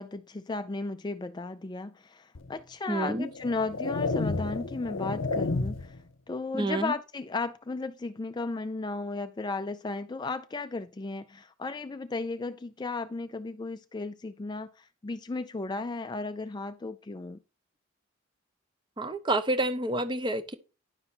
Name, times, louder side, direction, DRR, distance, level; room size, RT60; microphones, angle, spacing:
voice 1, 0.0-6.0 6.3-17.4, left 3 dB, 20° left, 0.3 m, -35 dB
sound 1, 2.3-2.5 3.2-6.0, left 3 dB, 65° left, 0.7 m, -31 dB
voice 2, 2.9-3.3 6.5-6.9 19.0-20.5, right 2 dB, 20° right, 0.8 m, -28 dB
10.5 x 5.6 x 4.1 m
head